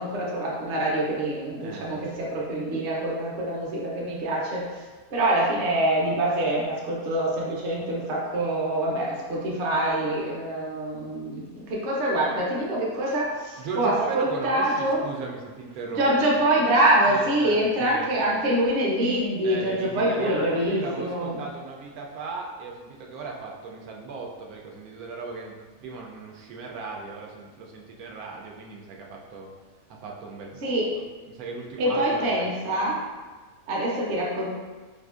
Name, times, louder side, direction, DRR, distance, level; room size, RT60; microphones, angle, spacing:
voice 1, 0.0-4.6 5.1-15.0 16.0-21.4 30.6-30.9 31.8-33.0 33.7-34.5, right 1 dB, 50° right, -4 dB, 0.7 m, -25 dB
voice 2, 1.6-2.2 13.6-16.3 17.1-18.1 19.4-25.5 25.8-29.5 29.9-32.7, right 4 dB, 85° right, -1 dB, 1.1 m, -37 dB
4.3 x 2.4 x 2.4 m, 1.4 s
omnidirectional pair, 1.5 m